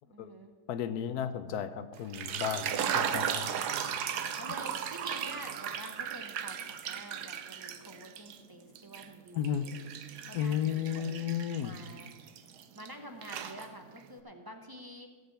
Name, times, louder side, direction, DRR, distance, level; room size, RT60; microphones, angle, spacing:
voice 1, 0.0-0.5 3.4-3.7 4.4-9.9 10.3-12.4 12.7-15.1, right 1 dB, 20° right, 4 dB, 0.8 m, -48 dB
voice 2, 0.7-3.5 9.3-9.6 10.3-11.7, left 9 dB, 75° left, 11 dB, 1.2 m, -33 dB
sound 1, 2.0-8.4 8.7-12.9 13.2-14.0, right 8 dB, 85° right, 1.3 m, -36 dB
15.5 x 5.3 x 8.0 m, 1.4 s
omnidirectional pair, 1.7 m